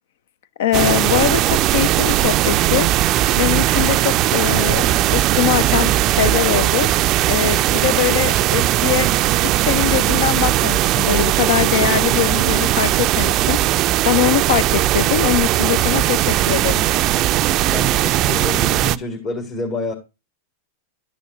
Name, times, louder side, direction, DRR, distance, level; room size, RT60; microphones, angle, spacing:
voice 1, 0.6-2.9 3.4-6.9 7.3-9.1 9.6-16.8, left 13 dB, 70° left, 0.5 m, -22 dB
sound 1, 0.7-19.0, right 14 dB, 45° right, 0.3 m, -18 dB
voice 2, 17.7-19.9, left 3 dB, 40° left, 1.7 m, -28 dB
12.0 x 6.9 x 2.5 m
hypercardioid pair, 115°, 0 cm